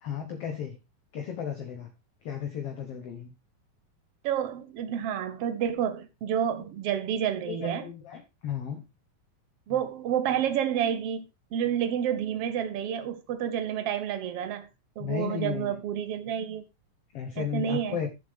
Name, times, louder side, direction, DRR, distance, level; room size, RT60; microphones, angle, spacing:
voice 1, 0.0-0.8 1.1-1.9 2.2-3.3 7.5-8.8 15.0-15.7 17.1-18.1, left 8 dB, 60° left, 1.7 m, -34 dB
voice 2, 4.2-7.8 9.7-11.3 11.5-14.7 15.0-16.6 17.4-18.0, right 9 dB, 80° right, 1.3 m, -29 dB
12.5 x 7.2 x 3.5 m
omnidirectional pair, 4.0 m